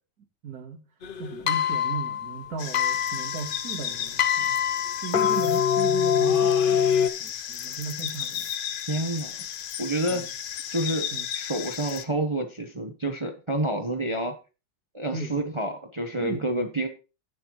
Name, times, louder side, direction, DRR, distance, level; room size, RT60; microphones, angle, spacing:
voice 1, 0.4-0.9 1.2-4.6 5.0-8.5 10.1-10.3 11.1-11.2 15.1-15.3 16.2-16.5, right 5 dB, 60° right, 1.7 m, -37 dB
sound 1, 1.0-7.1, left 8 dB, 70° left, 0.5 m, -24 dB
sound 2, 2.6-12.0, left 10 dB, 85° left, 1.5 m, -35 dB
voice 2, 8.9-9.3 9.8-10.2 10.7-11.1 11.3-14.4 14.9-16.9, right 1 dB, 25° right, 0.7 m, -28 dB
16.5 x 6.5 x 3.0 m
omnidirectional pair, 1.9 m